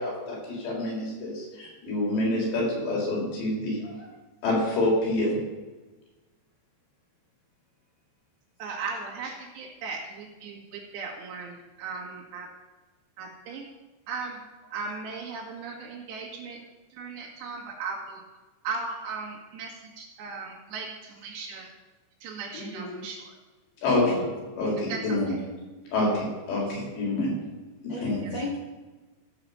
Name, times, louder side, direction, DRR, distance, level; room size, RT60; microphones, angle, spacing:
voice 1, 0.0-3.8 4.4-5.4 23.8-24.3 24.6-25.3 25.9-27.3 27.8-28.4, left 2 dB, 70° left, -3 dB, 6.2 m, -27 dB
voice 2, 3.8-4.1 22.5-23.1 23.9-24.2 24.7-25.0 27.9-28.6, left 2 dB, 50° left, -3 dB, 2.4 m, -34 dB
voice 3, 8.6-12.5 13.2-13.7 14.1-14.4 14.7-16.6 16.9-18.2 18.6-21.7 22.2-23.3 24.9-25.4, right 4 dB, 75° right, -1 dB, 4.1 m, -37 dB
15.5 x 5.9 x 7.0 m, 1.2 s
omnidirectional pair, 5.1 m